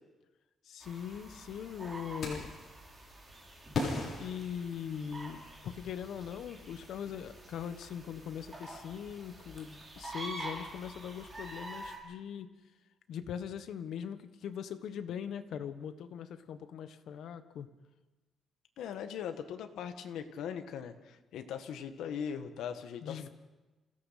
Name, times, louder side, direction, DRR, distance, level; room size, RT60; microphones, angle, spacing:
voice 1, 0.6-2.5 4.2-12.5 13.1-17.7 23.0-23.3, left 8 dB, 65° left, 10 dB, 1.4 m, -41 dB
sound 1, 0.8-12.0, right 1 dB, 20° right, 5.1 m, -47 dB
sound 2, 2.2-2.7 3.7-5.3, left 3 dB, 45° left, 6.9 m, -37 dB
voice 2, 18.8-23.3, left 8 dB, 85° left, 7 dB, 1.6 m, -40 dB
27.5 x 16.5 x 5.9 m, 1.1 s
cardioid pair, 150°, 0 cm